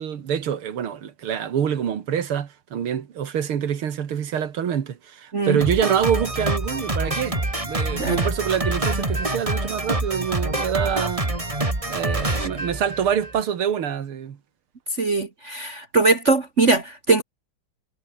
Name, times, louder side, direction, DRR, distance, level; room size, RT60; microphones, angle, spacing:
voice 1, 0.0-11.3 11.9-14.4, right 8 dB, 90° right, 2.6 m, -26 dB
Drum kit, 5.6-13.4, right 2 dB, 15° right, 2.8 m, -26 dB
voice 2, 15.0-17.2, right 3 dB, 35° right, 2.0 m, -21 dB
omnidirectional pair, 2.3 m